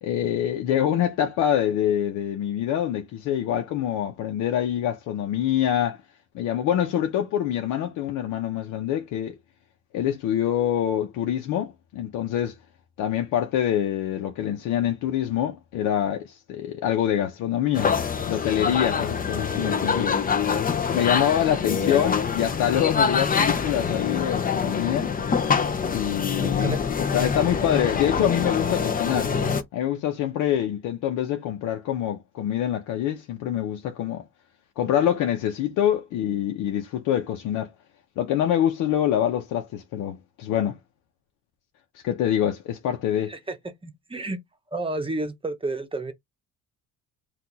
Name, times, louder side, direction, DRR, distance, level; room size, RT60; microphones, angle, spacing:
voice 1, 0.0-6.0 6.3-9.4 9.9-12.6 13.0-17.9 18.3-20.1 20.9-25.1 25.9-26.8 27.1-29.3 29.7-34.2 34.8-37.7 38.2-40.8 42.0-43.4, left 10 dB, 90° left, 0.8 m, -25 dB
sound 1, 17.7-29.6, left 6 dB, 30° left, 0.7 m, -25 dB
voice 2, 26.4-26.8 43.3-43.6 43.8-44.4 44.7-46.1, right 2 dB, 20° right, 0.9 m, -30 dB
4.3 x 2.5 x 4.0 m
cardioid pair, 105°, 30 cm